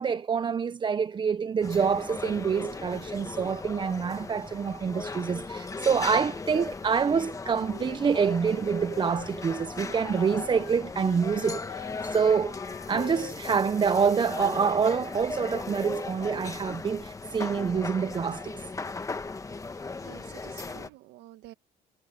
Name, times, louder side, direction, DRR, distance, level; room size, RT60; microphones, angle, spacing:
voice 1, 0.0-12.6 12.9-18.6, right 6 dB, 30° right, 0.6 m, -26 dB
sound 1, 1.6-20.9, left 3 dB, 20° left, 1.2 m, -37 dB
Wind instrument woodwind instrument, 7.6-10.9 11.2-14.6, left 16 dB, 85° left, 4.0 m, -45 dB
voice 2, 19.7-21.5, right 16 dB, 85° right, 1.3 m, -50 dB
cardioid pair, 110°, 17 cm